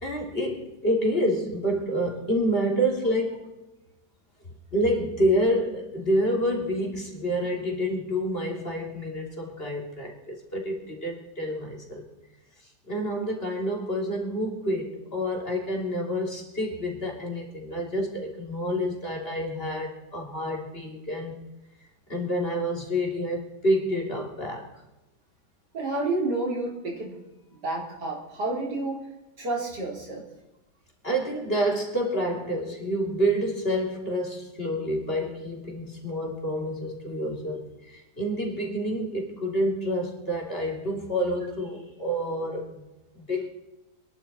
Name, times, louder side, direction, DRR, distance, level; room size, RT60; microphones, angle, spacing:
voice 1, 0.0-3.5 4.7-12.0 12.9-21.4 22.1-24.7 31.0-42.8 43.2-43.5, equal, 35° left, 0 dB, 3.1 m, -28 dB
voice 2, 25.7-27.2 27.5-29.0 29.4-30.2, right 2 dB, 80° right, -2 dB, 4.4 m, -30 dB
25.5 x 11.0 x 4.3 m, 0.99 s
omnidirectional pair, 1.8 m